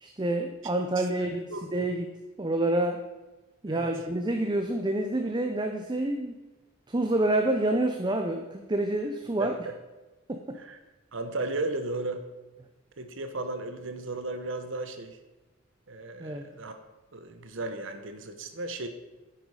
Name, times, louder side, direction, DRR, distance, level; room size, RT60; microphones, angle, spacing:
voice 1, 0.0-1.4 1.7-2.1 2.4-3.0 3.6-6.4 6.9-9.5 10.3-10.6 16.2-16.5, right 1 dB, 20° right, 5 dB, 0.6 m, -28 dB
voice 2, 1.0-1.6 3.7-3.9 9.4-9.5 10.6-10.8 11.1-12.2 13.0-15.2 15.9-16.8 17.1-18.9, right 2 dB, 65° right, 8 dB, 1.0 m, -35 dB
10.0 x 9.2 x 4.9 m, 1.1 s
head